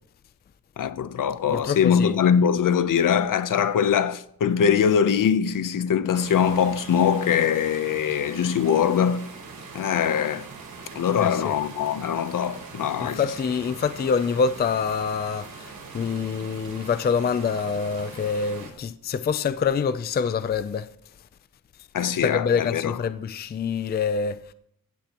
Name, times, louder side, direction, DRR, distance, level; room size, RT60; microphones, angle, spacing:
voice 1, 0.8-9.3 9.7-10.5 10.9-13.2 21.9-23.0, left 8 dB, 65° left, 0.8 m, -22 dB
voice 2, 1.5-2.1 11.1-11.6 13.0-20.9 22.2-24.4, left 6 dB, 30° left, 0.4 m, -26 dB
sound 1, 6.1-18.7, right 4 dB, 85° right, 4.6 m, -42 dB
17.0 x 15.0 x 3.0 m
wide cardioid pair, 175°, 35 cm